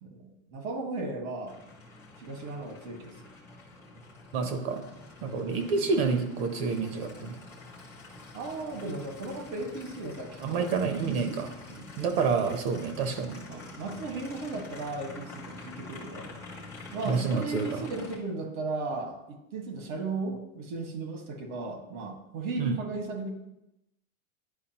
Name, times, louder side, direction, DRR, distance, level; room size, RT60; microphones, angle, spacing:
voice 1, 0.0-1.6 2.2-3.2 5.5-5.9 8.3-10.7 11.0-11.9 13.5-16.3 16.9-23.3, right 3 dB, 85° right, 4 dB, 1.7 m, -36 dB
Aircraft, 1.5-18.2, left 2 dB, 5° left, 0.3 m, -46 dB
voice 2, 4.3-4.8 5.2-7.3 10.4-11.5 12.0-13.4 17.1-17.9 22.6-22.8, right 5 dB, 45° right, 7 dB, 0.8 m, -28 dB
10.0 x 4.9 x 2.9 m, 0.89 s
supercardioid pair, 165°, 41 cm